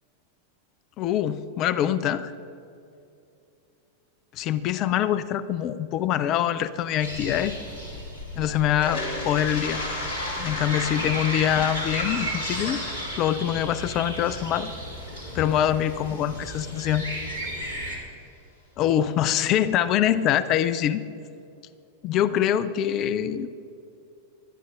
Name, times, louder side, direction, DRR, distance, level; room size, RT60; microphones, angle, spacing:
voice 1, 1.0-2.3 4.3-7.5 8.4-9.8 10.4-12.8 13.2-14.7 15.3-17.1 18.8-21.0 22.0-23.5, left 11 dB, 35° left, 15 dB, 0.4 m, -24 dB
sound 1, 7.0-18.0, equal, 85° right, 2.5 m, -35 dB
Toilet flush, 8.7-16.6, left 1 dB, 55° left, 3.4 m, -34 dB
21.5 x 11.0 x 2.5 m, 2.6 s
figure-of-eight pair, 90°, 0 cm